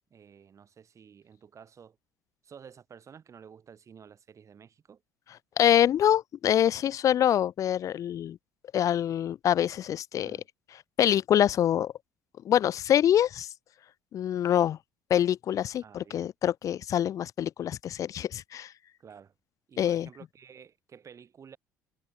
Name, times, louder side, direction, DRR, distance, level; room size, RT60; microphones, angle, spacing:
voice 1, 0.1-2.0 2.4-5.0 10.2-10.4 15.8-16.3 19.0-19.3 19.7-21.6, right 7 dB, 35° right, 2.4 m, -51 dB
voice 2, 5.6-8.4 8.7-10.4 11.0-11.9 12.4-13.5 14.1-14.8 15.1-18.7 19.8-20.1, left 10 dB, 35° left, 0.4 m, -25 dB
figure-of-eight pair, 55°, 9 cm